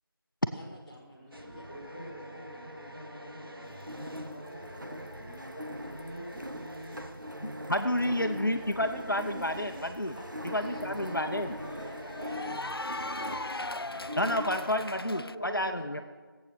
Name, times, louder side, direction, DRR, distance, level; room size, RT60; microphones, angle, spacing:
voice 1, 0.5-1.8 10.1-11.2 11.8-13.4 15.5-15.8, equal, 20° right, -9 dB, 2.6 m, -51 dB
sound 1, 1.3-15.0, right 1 dB, 75° right, 1.9 m, -46 dB
voice 2, 1.7-8.8 15.0-16.0, equal, 25° left, -3 dB, 4.1 m, -46 dB
sound 2, 3.7-14.9, equal, 55° right, 0.7 m, -42 dB
voice 3, 7.4-10.1 10.5-11.5 14.2-16.0, left 1 dB, 60° left, 6 dB, 0.9 m, -30 dB
Cheering / Applause, 9.9-15.4, left 2 dB, 85° left, 0.5 m, -40 dB
17.5 x 8.4 x 6.6 m, 1.4 s
figure-of-eight pair, 175°, 12 cm